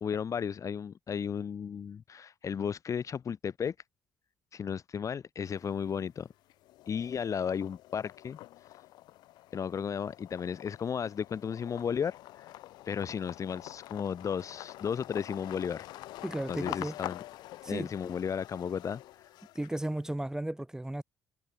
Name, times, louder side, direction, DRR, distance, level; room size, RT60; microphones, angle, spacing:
voice 1, 0.0-3.7 4.5-6.3 6.9-8.4 9.5-12.5 12.9-15.9 16.5-17.2 17.6-19.0, left 7 dB, 50° left, 1.9 m, -34 dB
sound 1, 5.5-6.1 6.5-20.0, left 16 dB, 80° left, 1.3 m, -46 dB
voice 2, 16.2-16.9 17.6-17.9 19.5-21.0, right 1 dB, 10° right, 1.0 m, -34 dB
supercardioid pair, 75°, 7 cm